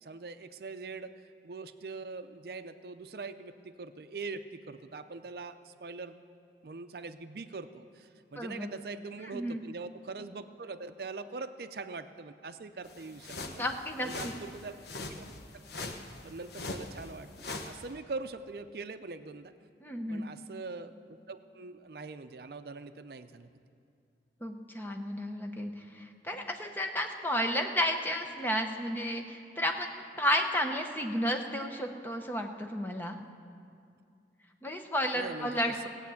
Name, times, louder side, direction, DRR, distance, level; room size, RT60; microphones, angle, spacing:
voice 1, 0.0-1.1 1.4-6.2 6.6-13.6 14.0-14.7 15.2-15.3 15.8-16.0 16.2-19.5 20.1-23.5 35.1-35.9, right 4 dB, 60° right, 10 dB, 0.5 m, -42 dB
voice 2, 8.4-8.7 9.3-9.6 13.4-14.3 19.8-20.3 24.4-29.9 30.2-33.2 34.6-35.9, equal, 10° left, 4 dB, 0.8 m, -32 dB
sound 1, 12.8-17.8, left 2 dB, 65° left, 0.9 m, -42 dB
16.5 x 8.6 x 7.0 m, 2.4 s
head